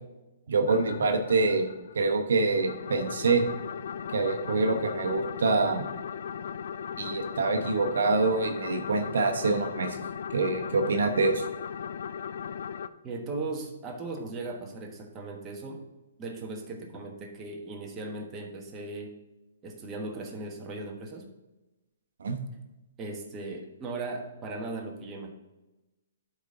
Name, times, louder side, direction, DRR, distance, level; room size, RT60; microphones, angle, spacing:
voice 1, 0.5-1.7 1.9-3.5 4.1-5.9 7.0-10.0 10.3-11.4 22.2-22.4, right 3 dB, 75° right, 5 dB, 0.9 m, -25 dB
sound 1, 0.7-2.1 2.5-12.9, left 7 dB, 65° left, 0.4 m, -37 dB
voice 2, 13.0-15.8 16.2-19.1 19.6-21.3 23.0-25.3, right 3 dB, 20° right, 1 dB, 1.3 m, -37 dB
11.5 x 4.2 x 3.8 m, 1.0 s
hypercardioid pair, 145°, 0 cm